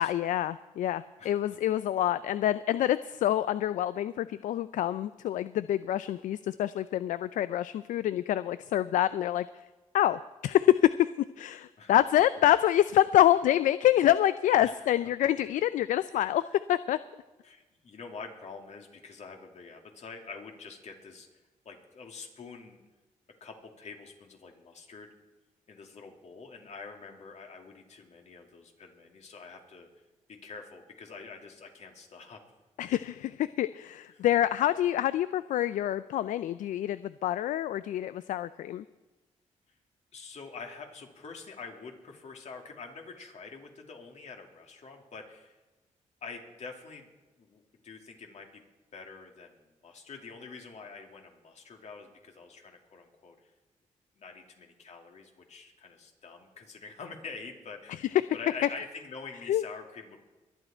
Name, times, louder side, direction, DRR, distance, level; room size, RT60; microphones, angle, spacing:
voice 1, 0.0-9.4 9.9-11.1 11.4-16.4 16.7-17.0 32.8-38.8 58.0-58.4 59.5-59.6, left 12 dB, 75° left, 15 dB, 0.4 m, -26 dB
voice 2, 17.4-21.3 21.6-22.8 23.4-25.1 25.7-29.9 30.3-32.4 34.1-34.2 40.1-45.6 46.2-47.1 47.4-48.6 48.9-53.3 54.2-60.2, left 4 dB, 60° left, 2 dB, 2.8 m, -46 dB
22.5 x 9.1 x 4.4 m, 1.2 s
cardioid pair, 65°, 13 cm